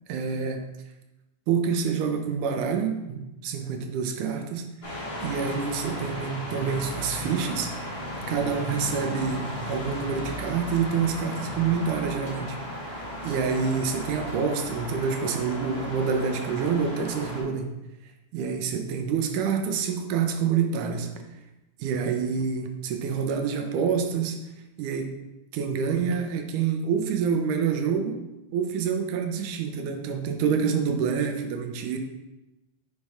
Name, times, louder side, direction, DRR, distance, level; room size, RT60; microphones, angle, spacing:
voice 1, 0.1-0.6 1.5-12.6 12.9-17.7 18.3-21.1 21.8-24.4 24.8-25.1 25.5-28.2 28.5-32.0, right 6 dB, 85° right, 5 dB, 2.2 m, -27 dB
sound 1, 4.8-17.4, left 1 dB, 60° left, 0.6 m, -35 dB
sound 2, 8.3-8.7 9.3-9.9 10.3-10.5 11.3-11.5 12.3-12.5 13.3-13.5 14.3-14.4, equal, 50° right, 1.7 m, -49 dB
5.8 x 5.3 x 3.4 m, 0.98 s
omnidirectional pair, 3.5 m